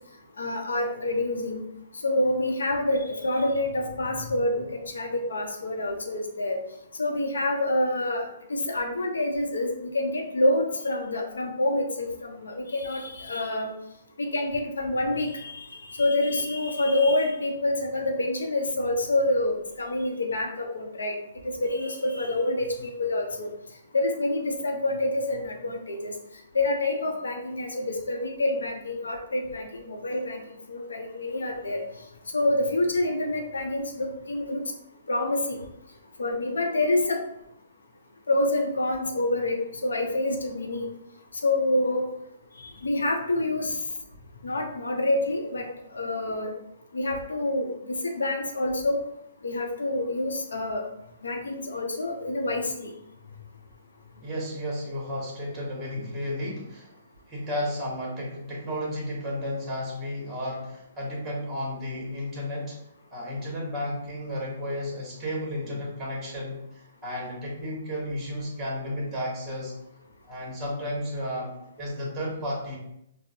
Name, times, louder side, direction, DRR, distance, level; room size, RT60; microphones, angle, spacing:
voice 1, 0.4-1.6 2.0-6.6 7.0-8.2 8.5-13.7 14.2-21.2 21.4-23.5 23.9-26.1 26.5-30.4 30.7-31.8 32.3-34.6 35.1-35.6 36.2-37.2 38.3-40.9 41.4-42.0 42.6-43.8 44.4-45.7 45.9-46.5 46.9-49.0 49.4-50.8 51.2-52.9, left 2 dB, 75° left, 3 dB, 0.7 m, -27 dB
voice 2, 54.2-56.9 57.3-62.8 63.1-69.7 70.3-72.8, left 1 dB, 15° right, -3 dB, 1.1 m, -33 dB
5.0 x 2.0 x 2.7 m, 0.81 s
figure-of-eight pair, 125°, 0 cm